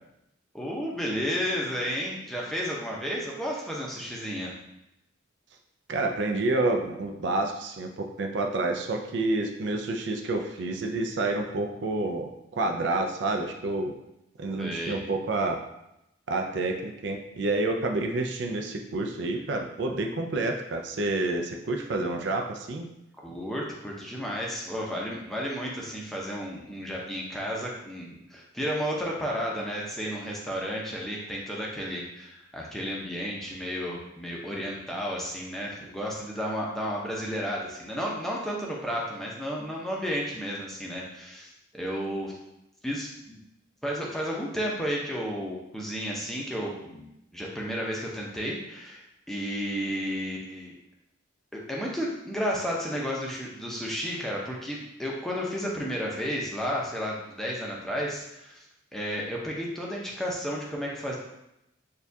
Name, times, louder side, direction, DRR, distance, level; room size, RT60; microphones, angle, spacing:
voice 1, 0.5-4.5 14.6-15.0 23.2-42.3 42.8-43.4 43.8-47.1 47.3-50.7 51.5-58.6 58.9-61.2, equal, ahead, -4 dB, 0.6 m, -32 dB
voice 2, 5.9-13.9 14.4-15.6 16.3-22.9, right 2 dB, 60° right, 3 dB, 0.4 m, -29 dB
6.5 x 2.3 x 2.7 m, 0.85 s
head